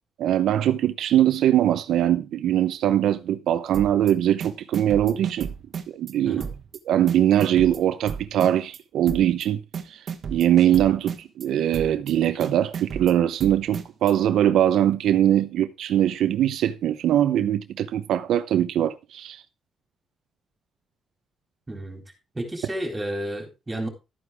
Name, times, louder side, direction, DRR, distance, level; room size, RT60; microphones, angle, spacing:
voice 1, 0.2-5.5 5.9-6.4 6.9-9.6 9.9-19.4, right 11 dB, 75° right, 0.7 m, -22 dB
sound 1, 3.7-4.1 4.4-6.1 6.4-6.8 7.1-8.8 9.1-9.5 9.7-11.5 11.7-12.1 12.4-14.1, right 6 dB, 45° right, 1.3 m, -34 dB
voice 2, 6.2-6.6 21.7-22.1 22.3-23.9, right 1 dB, 15° right, 3.8 m, -31 dB
13.0 x 9.4 x 3.5 m
cardioid pair, 165°, 0 cm